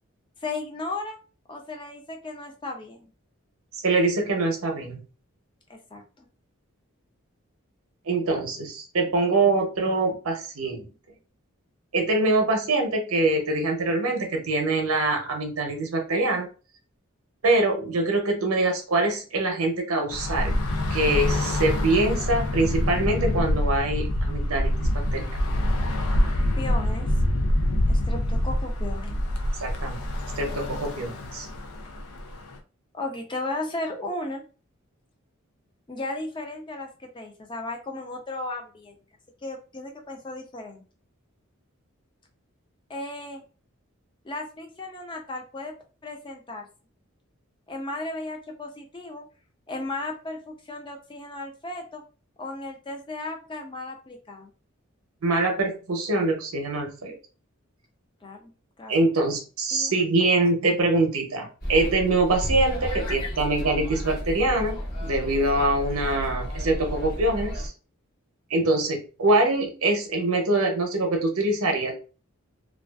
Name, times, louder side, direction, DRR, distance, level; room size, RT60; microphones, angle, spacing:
voice 1, 0.4-1.2 1.5-3.1 5.7-6.3 26.6-27.1 27.9-29.2 32.9-34.4 35.9-38.9 39.4-40.8 42.9-43.4 44.2-45.7 46.0-46.7 47.7-49.3 49.7-52.0 52.4-54.5 58.2-58.5 58.8-58.9 59.7-59.9 62.9-63.3, left 2 dB, 20° left, 3 dB, 0.5 m, -35 dB
voice 2, 3.8-5.0 8.1-10.9 11.9-16.5 17.4-20.6 20.9-25.3 29.6-30.0 30.4-31.5 55.2-57.1 58.9-67.7 68.5-71.9, right 2 dB, 85° right, 3 dB, 0.7 m, -24 dB
Bus / Traffic noise roadway noise, 20.1-32.6, left 1 dB, 80° left, 0.4 m, -26 dB
sound 1, 61.6-67.7, equal, 45° left, 0.9 m, -32 dB
2.4 x 2.3 x 2.3 m, 0.35 s
head